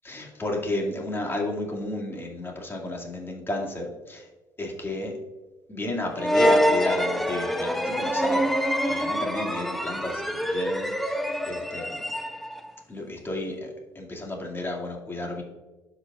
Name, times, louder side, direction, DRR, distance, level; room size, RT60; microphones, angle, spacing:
voice 1, 0.0-4.3 4.6-5.1 5.7-8.6 8.8-12.0 12.9-15.4, left 1 dB, 25° left, 0 dB, 2.3 m, -32 dB
sound 1, 6.2-12.7, equal, ahead, 0.7 m, -25 dB
13.0 x 4.9 x 2.4 m, 1.2 s
hypercardioid pair, 60°, 9 cm